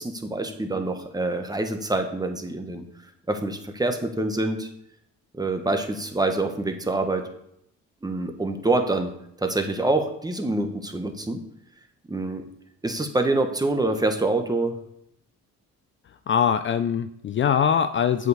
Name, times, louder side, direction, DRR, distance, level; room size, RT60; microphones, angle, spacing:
voice 1, 0.0-2.8 3.3-4.7 5.3-7.3 8.0-9.1 9.4-11.4 12.1-12.4 12.8-14.7, right 2 dB, 15° right, 5 dB, 1.1 m, -26 dB
voice 2, 16.3-18.3, left 8 dB, 40° left, 11 dB, 0.4 m, -22 dB
7.8 x 5.3 x 4.8 m, 0.74 s
cardioid pair, 90°, 30 cm